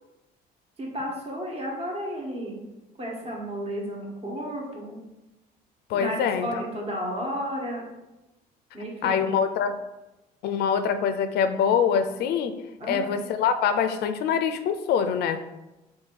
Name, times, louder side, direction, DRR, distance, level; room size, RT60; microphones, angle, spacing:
voice 1, 0.8-2.6 3.0-5.0 5.9-7.9 8.7-9.2 12.8-13.1, equal, 35° right, -2 dB, 1.3 m, -32 dB
voice 2, 5.9-6.5 9.0-9.8 10.4-12.5 12.9-15.4, left 7 dB, 70° left, 9 dB, 0.4 m, -24 dB
3.7 x 2.7 x 4.5 m, 0.99 s
cardioid pair, 110°, 17 cm